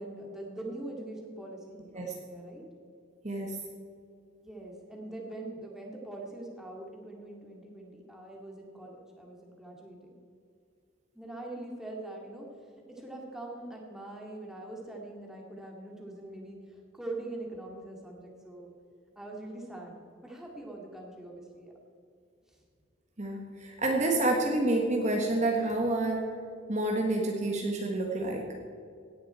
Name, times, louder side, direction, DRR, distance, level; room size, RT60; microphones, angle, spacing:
voice 1, 0.0-2.7 4.4-10.2 11.1-12.5 12.9-18.7 19.2-19.9 20.2-21.7, right 2 dB, 5° right, -2 dB, 2.2 m, -43 dB
voice 2, 3.2-3.6 23.2-26.3 26.7-28.5, right 2 dB, 35° right, 0 dB, 1.5 m, -28 dB
17.5 x 10.5 x 4.4 m, 2.4 s
head